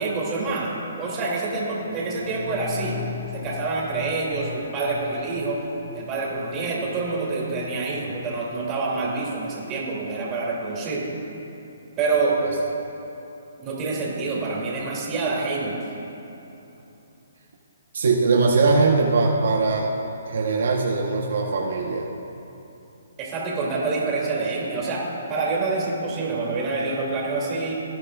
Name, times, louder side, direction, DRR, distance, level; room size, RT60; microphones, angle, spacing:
voice 1, 0.0-3.0 3.3-5.6 5.9-11.0 12.0-12.4 13.6-15.8 23.2-25.0 25.3-27.7, right 3 dB, 20° right, -4 dB, 2.6 m, -27 dB
sound 1, 1.7-11.1 11.4-11.5, left 8 dB, 40° left, 0.8 m, -41 dB
voice 2, 17.9-19.9 20.2-22.1, right 3 dB, 70° right, 0 dB, 1.0 m, -21 dB
18.5 x 10.5 x 2.4 m, 3.0 s
hypercardioid pair, 155°, 0 cm